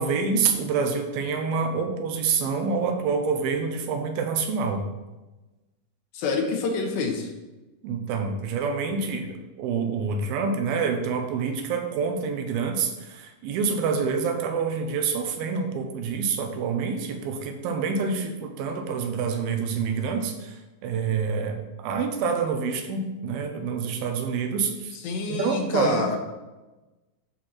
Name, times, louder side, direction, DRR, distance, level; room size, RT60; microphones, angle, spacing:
voice 1, 0.0-4.8 7.8-24.9 25.3-26.2, right 5 dB, 80° right, 5 dB, 2.7 m, -27 dB
voice 2, 6.1-7.3 25.0-26.2, left 4 dB, 75° left, 2 dB, 2.7 m, -27 dB
12.0 x 4.4 x 4.3 m, 1.1 s
omnidirectional pair, 4.3 m